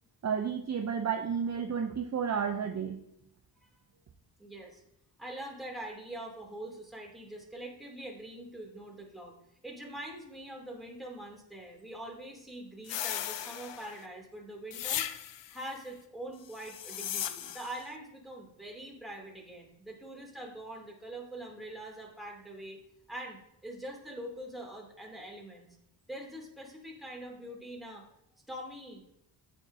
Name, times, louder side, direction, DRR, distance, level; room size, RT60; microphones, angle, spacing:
voice 1, 0.2-3.0, right 7 dB, 35° right, 4 dB, 0.7 m, -31 dB
voice 2, 4.4-4.8 5.2-9.3 9.6-15.0 15.5-22.8 23.1-25.7 26.1-28.0 28.5-29.0, right 1 dB, ahead, -2 dB, 3.1 m, -44 dB
sound 1, 12.9-14.1 14.7-15.6 16.5-17.8, left 11 dB, 70° left, 0.7 m, -37 dB
8.9 x 8.2 x 2.8 m, 0.79 s
cardioid pair, 65°, 45 cm